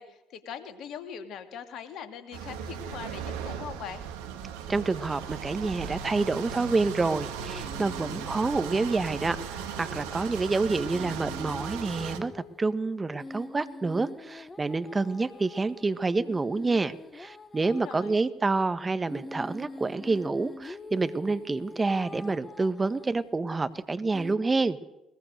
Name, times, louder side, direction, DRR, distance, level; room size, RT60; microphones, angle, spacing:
voice 1, 0.0-4.0 17.6-18.3, left 8 dB, 65° left, 8 dB, 2.6 m, -41 dB
sound 1, 2.3-12.2, right 7 dB, 80° right, 1.9 m, -37 dB
voice 2, 4.7-24.8, right 3 dB, 25° right, 13 dB, 1.5 m, -28 dB
sound 2, 7.1-10.1 10.3-10.4 10.9-18.2 19.1-23.3 24.1-24.3, left 2 dB, 25° left, 1.5 m, -45 dB
21.5 x 20.5 x 6.7 m, 0.89 s
hypercardioid pair, 50°, 0 cm